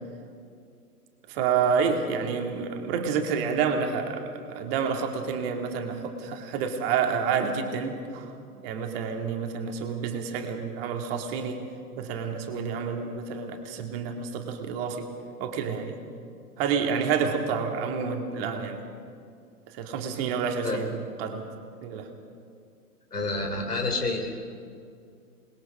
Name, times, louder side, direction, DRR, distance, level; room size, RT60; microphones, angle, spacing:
voice 1, 1.3-8.3 8.6-11.7 12.0-15.1 15.4-15.9 16.6-18.8 19.7-21.5 21.8-22.1, right 6 dB, 40° right, 4 dB, 2.4 m, -29 dB
voice 2, 23.1-24.4, left 2 dB, 80° left, 3 dB, 3.8 m, -29 dB
27.0 x 21.0 x 5.5 m, 2.4 s
figure-of-eight pair, 110°, 46 cm